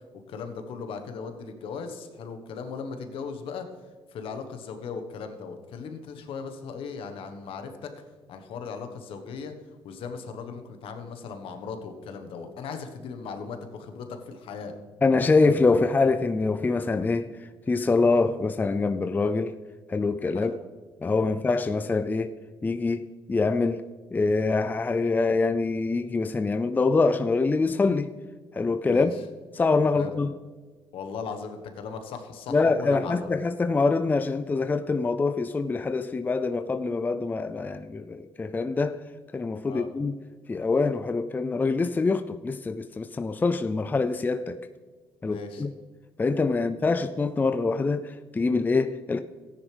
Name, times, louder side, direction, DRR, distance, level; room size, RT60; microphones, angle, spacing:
voice 1, 0.3-3.7 4.1-7.9 8.3-9.5 9.8-14.7 20.3-20.6 21.3-21.4 28.8-29.1 29.9-30.1 30.9-33.3 39.6-39.9 45.2-45.6 46.5-46.7, left 5 dB, 70° left, 1.3 m, -37 dB
voice 2, 15.0-19.6 19.9-20.5 21.0-23.8 24.1-28.2 28.5-29.1 29.5-30.4 32.5-39.0 39.3-40.2 40.5-44.6 45.2-45.7 46.2-49.2, left 3 dB, 20° left, 0.4 m, -25 dB
14.5 x 9.9 x 3.4 m
cardioid pair, 95°, 9 cm